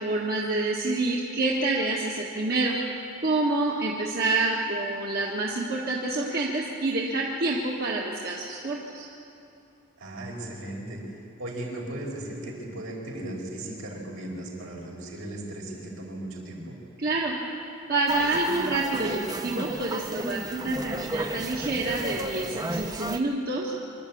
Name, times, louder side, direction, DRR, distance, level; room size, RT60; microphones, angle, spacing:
voice 1, 0.0-2.8 3.2-9.1 17.0-17.4 17.9-23.7, right 2 dB, 50° right, -3 dB, 1.6 m, -27 dB
voice 2, 10.0-16.7, right 1 dB, 75° right, -2 dB, 5.0 m, -37 dB
sound 1, 18.1-23.2, right 1 dB, 20° right, 0.7 m, -33 dB
25.0 x 12.5 x 8.6 m, 2.7 s
head